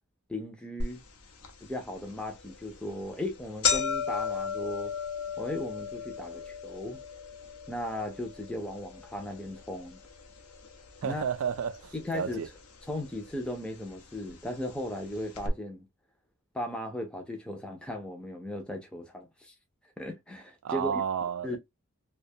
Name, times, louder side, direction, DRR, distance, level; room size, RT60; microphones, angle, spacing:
voice 1, 0.3-1.0 1.6-4.9 5.4-7.0 7.7-10.0 11.0-11.2 11.9-12.4 12.9-15.9 16.5-19.5 20.0-20.9 21.4-21.6, left 1 dB, 5° left, 0.4 m, -36 dB
sound 1, 0.8-0.9 1.4-1.5 2.4-2.6 2.9-3.0 3.2-11.5 11.7-12.5 13.3-13.4 14.3-14.4 14.7-14.8 15.3-15.5, left 6 dB, 85° left, 0.7 m, -35 dB
voice 2, 11.0-12.5 20.6-21.6, right 7 dB, 70° right, 0.3 m, -32 dB
2.5 x 2.2 x 2.6 m
head